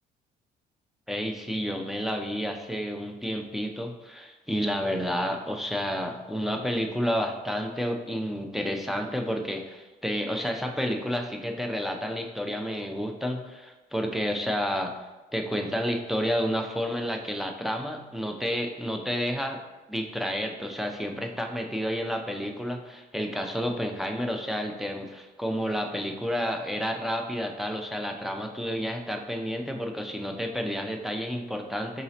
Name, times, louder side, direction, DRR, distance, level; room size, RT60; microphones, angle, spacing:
voice 1, 1.1-14.9 15.3-19.6 19.9-32.0, equal, ahead, 2 dB, 0.4 m, -30 dB
4.7 x 3.0 x 2.7 m, 1.2 s
cardioid pair, 110°, 17 cm